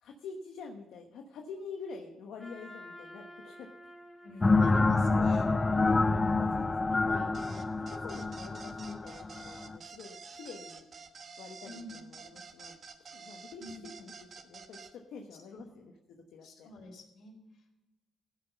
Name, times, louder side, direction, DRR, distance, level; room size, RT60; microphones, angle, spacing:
voice 1, 0.0-3.7 4.3-5.4 6.0-10.8 11.4-16.7, left 4 dB, 80° left, 2 dB, 1.2 m, -47 dB
Trumpet, 2.4-7.5, equal, 10° left, 4.5 m, -53 dB
voice 2, 4.2-5.5 11.6-11.9 13.6-13.8 15.5-15.6 16.4-17.3, left 2 dB, 65° left, 0 dB, 4.0 m, -45 dB
sound 1, 4.4-9.8, left 3 dB, 25° left, 0.5 m, -27 dB
sound 2, 7.3-14.9, right 5 dB, 45° right, 1.2 m, -49 dB
15.5 x 5.9 x 7.0 m, 1.1 s
cardioid pair, 90°, 0 cm